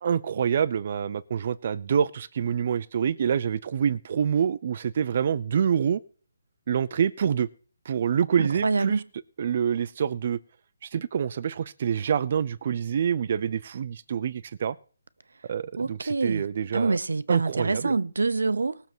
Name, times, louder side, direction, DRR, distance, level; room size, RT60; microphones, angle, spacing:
voice 1, 0.0-6.0 6.7-7.5 7.9-9.0 9.4-10.4 10.8-14.8 15.5-16.9 17.3-17.9, right 8 dB, 40° right, 0.6 m, -26 dB
voice 2, 8.4-9.0 15.8-16.4 16.7-18.8, right 3 dB, 85° right, 0.8 m, -26 dB
18.5 x 6.9 x 6.1 m
hypercardioid pair, 165°, 0 cm